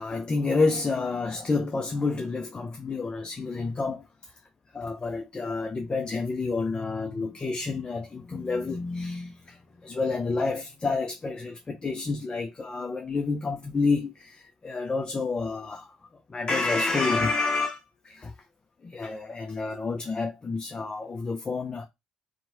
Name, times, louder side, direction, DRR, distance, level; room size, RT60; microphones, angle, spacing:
voice 1, 0.0-4.3 4.7-16.0 16.3-18.3 18.8-21.9, left 3 dB, 25° left, 0.4 m, -29 dB
2.9 x 2.1 x 2.8 m
hypercardioid pair, 55°, 3 cm